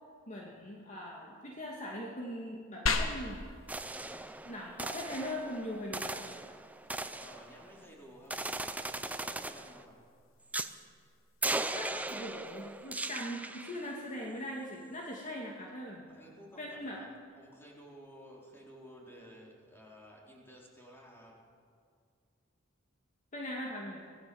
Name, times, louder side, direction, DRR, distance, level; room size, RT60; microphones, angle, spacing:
voice 1, 0.3-3.5 4.4-6.3 11.7-16.1 16.6-17.0 23.3-24.0, equal, 40° left, -2 dB, 2.5 m, -41 dB
sound 1, 2.9-12.9, left 3 dB, 85° left, 1.8 m, -42 dB
sound 2, 3.7-7.9 8.3-9.8 10.5-10.8 11.4-13.9, right 2 dB, 10° right, 0.7 m, -38 dB
voice 2, 7.1-10.0 16.1-17.1 17.3-21.4, equal, 10° left, -3 dB, 4.2 m, -54 dB
25.0 x 17.5 x 7.2 m, 2.2 s
head